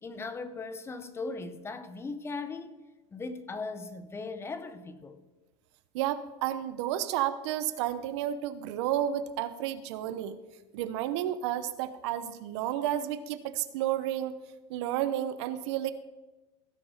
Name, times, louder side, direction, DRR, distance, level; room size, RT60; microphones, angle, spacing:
voice 1, 0.0-2.8 3.1-5.2, left 3 dB, 15° left, 0.8 m, -38 dB
voice 2, 5.9-10.4 10.7-14.3 14.7-15.9, right 11 dB, 70° right, 0.8 m, -31 dB
16.0 x 6.0 x 4.9 m
supercardioid pair, 135°, 15 cm